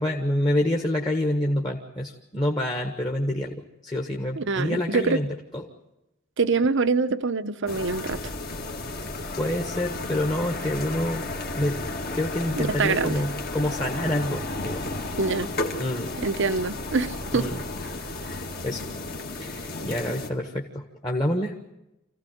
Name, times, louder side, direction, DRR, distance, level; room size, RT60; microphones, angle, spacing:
voice 1, 0.0-5.7 8.9-9.0 9.3-14.8 15.8-16.2 17.3-17.6 18.1-18.9 19.4-21.5, left 1 dB, 20° left, 1 dB, 1.5 m, -28 dB
voice 2, 4.4-5.2 6.4-8.2 12.6-13.2 15.2-15.5 16.2-17.5, right 4 dB, 55° right, 12 dB, 0.8 m, -25 dB
sound 1, 7.7-20.3, left 2 dB, 40° left, 1.9 m, -33 dB
26.5 x 16.0 x 9.3 m, 0.93 s
head